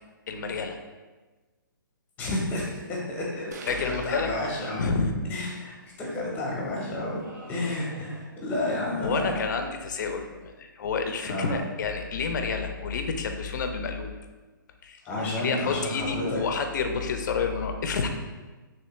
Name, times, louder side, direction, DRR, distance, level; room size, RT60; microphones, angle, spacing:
voice 1, 0.3-0.8 3.7-4.3 4.8-5.1 9.0-14.1 14.8-18.1, left 5 dB, 55° left, 6 dB, 0.4 m, -29 dB
voice 2, 2.2-4.9 5.3-7.2 7.5-9.4 11.2-11.6 15.0-16.4, left 1 dB, 15° left, -3 dB, 0.7 m, -31 dB
sound 1, 3.5-5.5, right 4 dB, 50° right, 0.3 m, -44 dB
sound 2, 7.1-8.5, right 2 dB, 70° right, 0.9 m, -47 dB
3.2 x 3.0 x 3.0 m, 1.3 s
hypercardioid pair, 150°, 12 cm